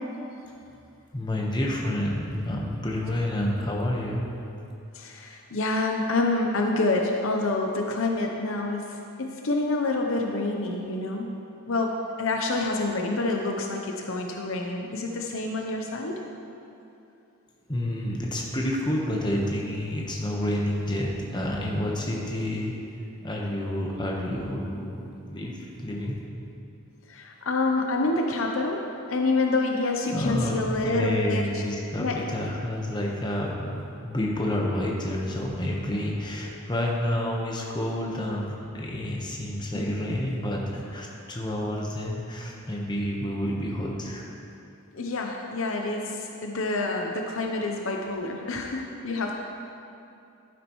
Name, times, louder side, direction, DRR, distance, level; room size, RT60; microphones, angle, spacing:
voice 1, 1.1-4.2 17.7-22.8 23.2-26.2 30.1-44.2, left 1 dB, 20° left, -2 dB, 1.0 m, -29 dB
voice 2, 4.9-11.3 11.7-16.2 27.1-31.6 32.0-32.3 39.7-40.2 44.9-49.3, left 2 dB, 60° left, 2 dB, 0.7 m, -27 dB
11.5 x 9.6 x 3.1 m, 2.7 s
head